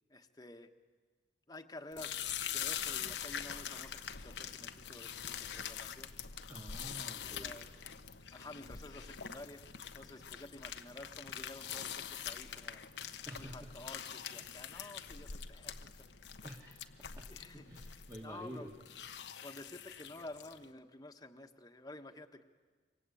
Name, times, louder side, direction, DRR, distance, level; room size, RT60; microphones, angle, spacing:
voice 1, 0.1-0.7 1.5-2.1 2.5-6.1 7.2-7.7 8.3-9.6 9.9-12.8 13.4-16.1 17.3-17.7 18.2-18.7 19.4-22.4, left 2 dB, 20° left, 5 dB, 1.3 m, -51 dB
sound 1, 1.9-20.6, left 8 dB, 85° left, 1.1 m, -44 dB
voice 2, 6.5-7.6 13.3-13.7 16.4-16.9 17.2-17.3 17.5-18.7, right 1 dB, 20° right, -1 dB, 2.1 m, -49 dB
27.0 x 24.0 x 8.5 m, 1.5 s
head